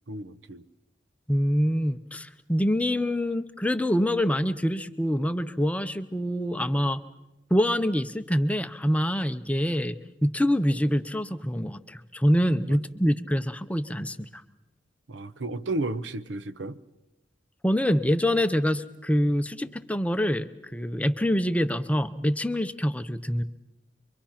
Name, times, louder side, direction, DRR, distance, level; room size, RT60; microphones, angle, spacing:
voice 1, 0.1-0.6 15.1-16.8, right 2 dB, 85° right, 0.9 m, -32 dB
voice 2, 1.3-7.0 7.5-14.4 17.6-23.4, equal, 10° left, 0.7 m, -25 dB
25.0 x 24.0 x 5.8 m
head